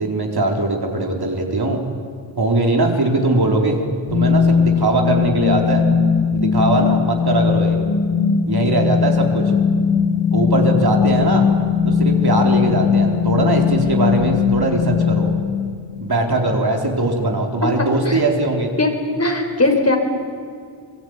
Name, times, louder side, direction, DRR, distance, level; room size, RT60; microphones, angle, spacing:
voice 1, 0.0-1.8 2.4-3.8 4.1-5.8 6.3-7.8 8.5-9.4 10.3-11.5 11.8-15.3 16.0-18.7, right 2 dB, 50° right, 1 dB, 4.4 m, -20 dB
sound 1, 4.1-16.1, left 6 dB, 75° left, 4.0 m, -18 dB
voice 2, 17.8-18.2 18.8-18.9 19.2-20.0, left 2 dB, 30° left, 4 dB, 5.0 m, -19 dB
26.5 x 21.0 x 9.8 m, 2.2 s
cardioid pair, 55°, 47 cm